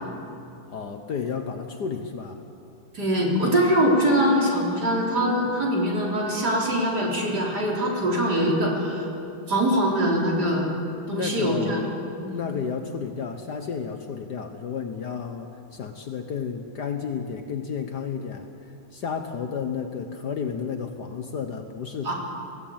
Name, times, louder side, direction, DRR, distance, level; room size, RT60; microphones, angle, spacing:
voice 1, 0.7-2.4 11.1-11.8 12.3-18.5 18.9-22.1, left 6 dB, 55° left, 6 dB, 1.5 m, -32 dB
voice 2, 2.9-9.1 9.5-10.7 11.1-11.9 12.2-12.4 22.0-22.1, equal, 50° right, -2 dB, 4.3 m, -23 dB
22.0 x 16.0 x 8.8 m, 2.6 s
omnidirectional pair, 2.3 m